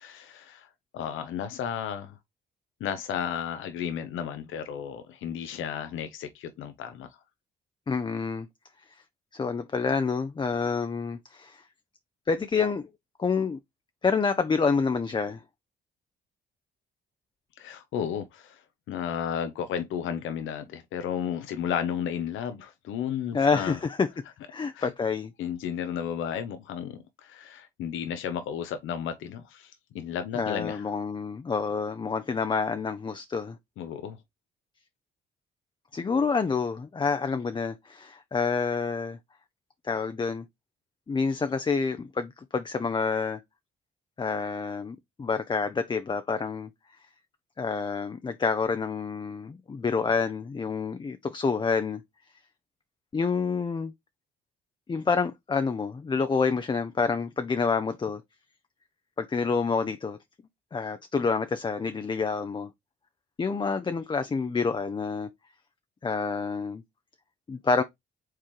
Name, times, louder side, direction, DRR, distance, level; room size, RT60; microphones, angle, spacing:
voice 1, 0.0-2.2 2.8-7.1 17.6-23.8 24.7-24.9 25.4-30.8 33.8-34.2, left 8 dB, 80° left, 0.8 m, -33 dB
voice 2, 7.9-8.5 9.3-11.6 12.3-12.8 13.2-13.6 14.0-15.4 23.3-24.1 24.5-25.3 30.3-33.6 35.9-39.2 39.8-40.4 41.1-43.4 44.2-46.7 47.6-52.0 53.1-53.9 54.9-58.2 59.2-60.2 60.7-62.7 63.4-65.3 66.0-66.8 67.5-67.8, left 5 dB, 25° left, 0.5 m, -28 dB
4.5 x 3.6 x 3.1 m
cardioid pair, 90°, 20 cm